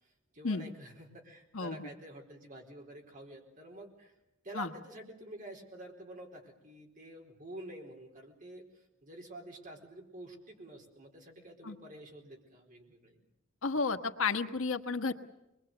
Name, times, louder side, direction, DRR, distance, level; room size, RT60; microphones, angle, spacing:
voice 1, 0.3-4.1 4.4-8.7 9.0-13.2, right 1 dB, 40° right, 1 dB, 4.3 m, -49 dB
voice 2, 1.5-1.9 4.5-4.7 11.6-11.8 13.6-15.1, left 4 dB, 85° left, 8 dB, 1.3 m, -32 dB
24.5 x 22.0 x 7.9 m, 0.92 s
head